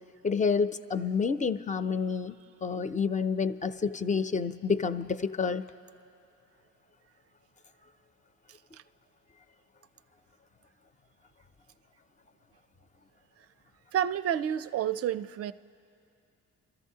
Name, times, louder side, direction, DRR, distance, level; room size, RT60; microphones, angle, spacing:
voice 1, 0.2-5.6, left 5 dB, 25° left, 11 dB, 0.4 m, -29 dB
voice 2, 13.9-15.5, right 10 dB, 50° right, 15 dB, 0.4 m, -29 dB
29.0 x 13.5 x 2.8 m, 2.5 s
cardioid pair, 75°, 31 cm